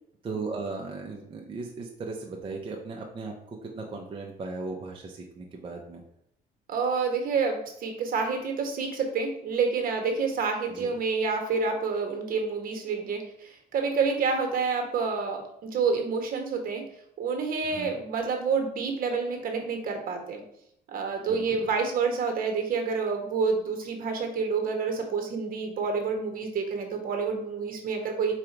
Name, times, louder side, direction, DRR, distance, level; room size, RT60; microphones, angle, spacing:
voice 1, 0.2-6.0 10.7-10.9 17.6-17.9 21.3-21.4, right 3 dB, 30° right, 0 dB, 0.6 m, -37 dB
voice 2, 6.7-16.8 17.2-20.4 20.9-28.3, right 5 dB, 60° right, 3 dB, 1.1 m, -28 dB
4.8 x 2.5 x 4.5 m, 0.74 s
cardioid pair, 110°, 17 cm